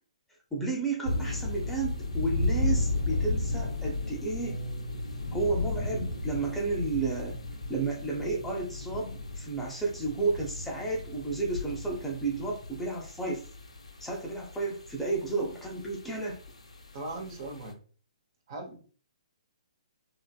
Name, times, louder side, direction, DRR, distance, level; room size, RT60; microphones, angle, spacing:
voice 1, 0.5-4.6 5.3-7.4 7.7-13.4 14.0-16.4, right 3 dB, 5° left, -2 dB, 0.6 m, -32 dB
sound 1, 1.0-17.7, left 2 dB, 75° left, 0.7 m, -34 dB
Bass guitar, 4.4-10.6, right 3 dB, 20° right, 1.1 m, -47 dB
voice 2, 16.9-17.8 18.5-18.8, right 2 dB, 45° right, 3 dB, 0.7 m, -39 dB
3.1 x 2.5 x 2.2 m, 0.40 s
figure-of-eight pair, 125°, 4 cm